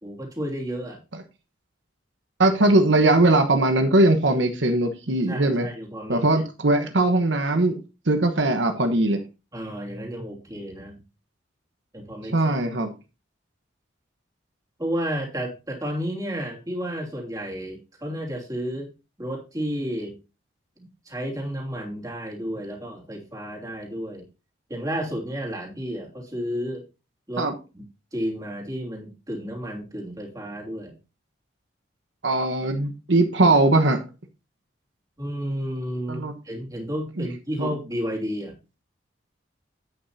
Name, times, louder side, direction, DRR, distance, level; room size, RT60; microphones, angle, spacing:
voice 1, 0.0-1.0 5.3-6.4 9.5-11.0 11.9-12.6 14.8-18.9 19.2-20.2 20.8-24.3 24.7-26.9 27.3-27.8 28.1-30.9 35.2-38.6, equal, 20° right, 0 dB, 3.0 m, -32 dB
voice 2, 2.4-5.7 6.1-7.8 8.1-9.2 12.3-12.9 27.4-27.5 32.2-34.0 36.1-36.3 37.2-37.3 37.6-37.7, right 2 dB, 70° right, 6 dB, 1.1 m, -20 dB
10.5 x 9.1 x 2.8 m, 0.29 s
head